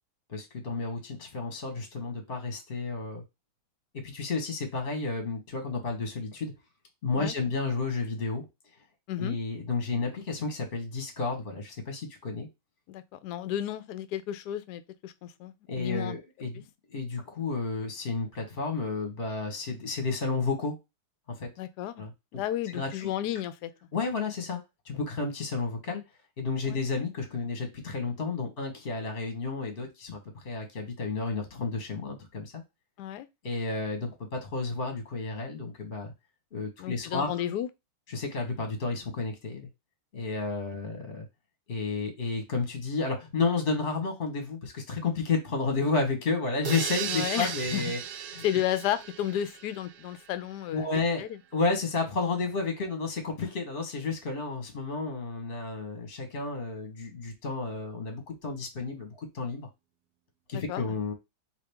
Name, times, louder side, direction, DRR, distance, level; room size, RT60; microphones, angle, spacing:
voice 1, 0.3-3.2 3.9-6.5 7.0-8.4 9.2-12.5 15.7-16.6 16.9-20.8 21.3-21.5 22.0-22.1 22.7-23.1 23.9-24.6 24.8-26.0 26.4-32.6 33.4-36.1 36.5-37.4 38.1-39.7 40.1-41.2 41.7-48.0 48.3-48.4 50.7-51.3 51.5-59.7 60.5-61.1, left 4 dB, 35° left, 1.1 m, -31 dB
voice 2, 12.9-16.2 21.6-22.0 22.3-23.7 26.6-26.8 33.0-33.3 36.8-37.7 47.1-47.8 48.4-51.4 60.5-60.8, left 11 dB, 70° left, 1.0 m, -33 dB
sound 1, 46.6-50.4, right 9 dB, 75° right, 0.9 m, -37 dB
4.9 x 3.0 x 3.4 m
omnidirectional pair, 2.2 m